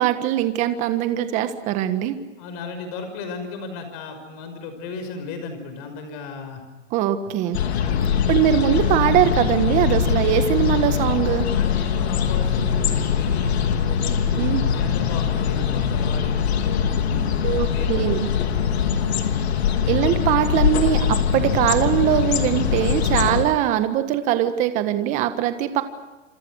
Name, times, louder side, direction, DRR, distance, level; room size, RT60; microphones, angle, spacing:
voice 1, 0.0-2.2 6.9-7.6 8.3-11.5 14.3-14.6 17.4-18.3 19.9-25.8, right 11 dB, 20° right, 10 dB, 1.5 m, -21 dB
voice 2, 2.4-6.6 7.8-8.0 11.5-19.5, left 4 dB, 30° left, 8 dB, 5.9 m, -36 dB
sound 1, 7.5-23.4, left 7 dB, 60° left, 3.4 m, -22 dB
28.5 x 26.5 x 6.4 m, 1.2 s
hypercardioid pair, 170°, 36 cm